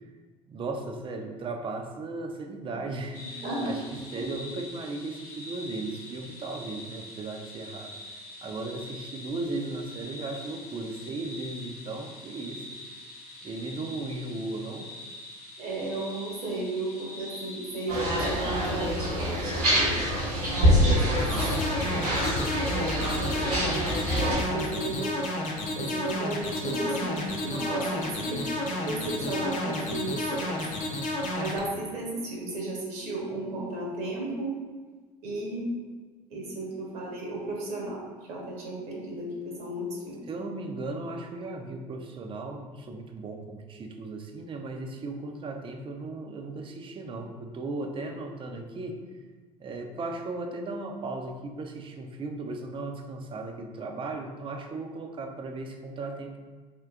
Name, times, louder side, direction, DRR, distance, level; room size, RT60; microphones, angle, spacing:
voice 1, 0.5-8.0 8.4-12.8 13.4-14.9 40.3-49.1 49.6-56.4, right 2 dB, 25° right, 4 dB, 0.4 m, -36 dB
sound 1, 3.1-18.4, left 2 dB, 90° left, 0.6 m, -44 dB
voice 2, 3.4-3.8 15.6-20.0 20.8-21.3 21.9-22.6 23.1-23.8 24.2-25.1 25.7-28.4 28.8-30.6 31.4-34.5 35.2-35.7 36.3-38.0 38.3-40.3, right 2 dB, 55° right, -2 dB, 0.9 m, -34 dB
sound 2, 17.9-24.3, equal, 85° right, 1.0 m, -25 dB
sound 3, 21.2-31.6, left 1 dB, 40° left, 0.6 m, -31 dB
3.6 x 2.4 x 2.4 m, 1.4 s
hypercardioid pair, 65°, 19 cm